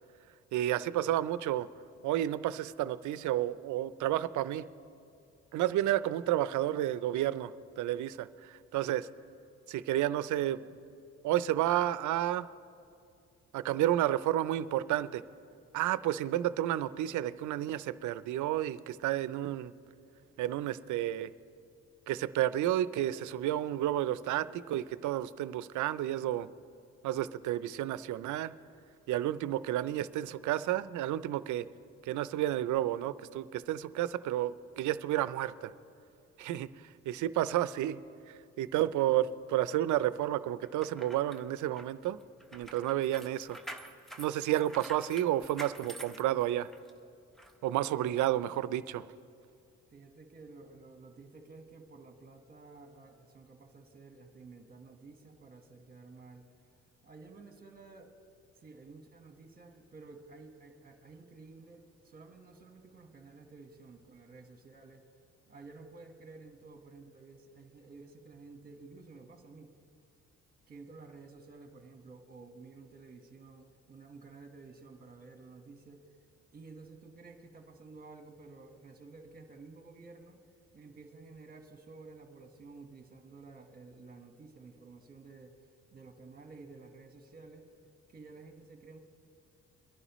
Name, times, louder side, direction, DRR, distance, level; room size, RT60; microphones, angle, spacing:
voice 1, 0.5-1.7 2.0-4.7 5.5-9.1 9.7-10.7 11.2-12.5 13.5-15.2 15.7-19.7 20.4-21.3 22.1-26.5 27.0-28.5 29.1-31.7 32.0-35.7 36.4-38.0 38.3-42.2 42.5-43.6 44.2-46.7 47.6-49.1, right 13 dB, 75° right, 16 dB, 0.5 m, -31 dB
sound 1, 40.6-46.9 47.4-47.5, right 1 dB, ahead, 0.8 m, -48 dB
voice 2, 47.9-48.4 49.9-56.5 57.0-58.1 58.5-65.0 65.5-69.7 70.7-76.0 76.5-80.4 80.7-85.5 85.9-87.7 88.1-89.0, right 3 dB, 30° right, 5 dB, 1.3 m, -52 dB
23.5 x 11.0 x 3.1 m, 2.5 s
cardioid pair, 90°, 30 cm